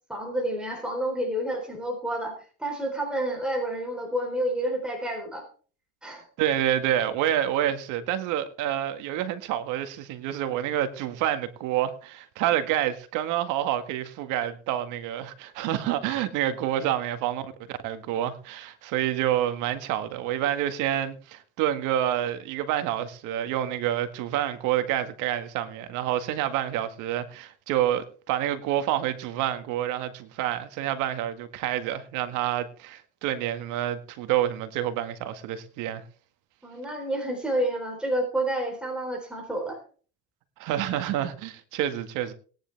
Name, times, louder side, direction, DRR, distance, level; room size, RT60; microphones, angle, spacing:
voice 1, 0.1-2.3 2.6-5.4 6.0-6.2 36.6-39.8, right 1 dB, 5° right, 3.9 m, -29 dB
voice 2, 6.4-36.0 40.6-42.3, right 11 dB, 70° right, 1.8 m, -28 dB
19.0 x 10.0 x 3.5 m
supercardioid pair, 120°, 32 cm